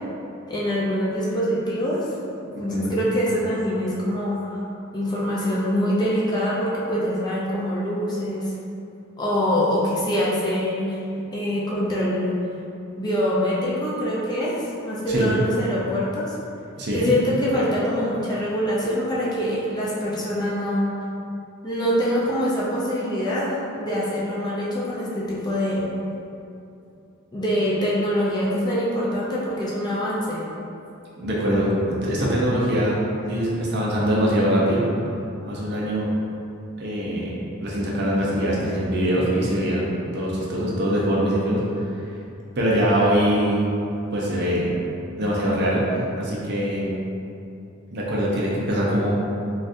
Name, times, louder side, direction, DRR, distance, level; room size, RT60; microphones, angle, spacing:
voice 1, 0.5-2.0 2.4-4.6 4.9-8.5 9.2-11.0 11.3-12.4 13.0-16.3 16.9-20.9 21.6-25.9 27.3-30.4, equal, 20° left, -7 dB, 0.5 m, -24 dB
voice 2, 16.8-17.1 31.2-33.0 33.3-34.8 35.5-36.1 36.8-41.8 42.6-43.6 44.1-44.7 45.2-46.9 47.9-49.2, equal, 55° right, -5 dB, 0.6 m, -23 dB
4.0 x 2.4 x 2.5 m, 2.7 s
head